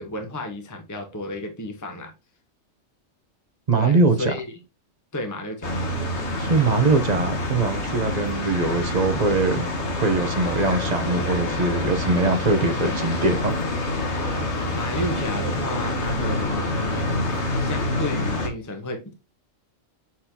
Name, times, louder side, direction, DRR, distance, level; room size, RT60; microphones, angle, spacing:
voice 1, 0.0-2.1 3.7-4.5 5.1-5.7 14.7-17.2 17.6-19.1, left 1 dB, 15° left, 1.2 m, -32 dB
voice 2, 3.7-4.3 6.4-9.7 10.0-13.5, right 3 dB, 35° right, 1.1 m, -22 dB
sound 1, 5.6-18.5, left 1 dB, 60° left, 1.7 m, -27 dB
7.6 x 4.3 x 2.9 m
omnidirectional pair, 1.4 m